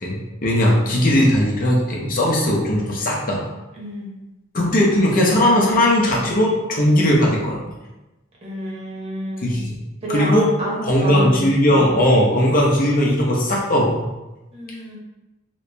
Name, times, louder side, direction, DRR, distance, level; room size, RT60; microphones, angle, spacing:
voice 1, 0.0-3.4 4.5-7.6 9.4-9.6 10.1-10.5 10.9-14.1, left 1 dB, 45° left, -2 dB, 0.7 m, -18 dB
voice 2, 3.7-4.1 8.4-9.6 10.0-11.4 11.6-11.9 14.5-15.0, equal, 30° right, -5 dB, 1.0 m, -29 dB
3.0 x 2.7 x 3.3 m, 1.0 s
head